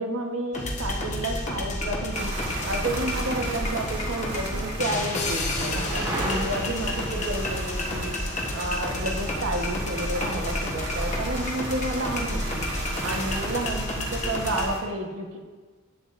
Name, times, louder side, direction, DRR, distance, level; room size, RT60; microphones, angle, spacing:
voice 1, 0.0-8.2 8.5-12.7 13.0-15.4, right 1 dB, 80° right, 2 dB, 1.1 m, -31 dB
sound 1, 0.5-14.7, left 1 dB, 35° left, 1.1 m, -30 dB
sound 2, 2.1-14.8, right 2 dB, 55° right, 1.5 m, -36 dB
sound 3, 4.5-11.4 13.7-14.3, equal, 25° right, 1.1 m, -39 dB
10.5 x 7.1 x 2.6 m, 1.3 s
head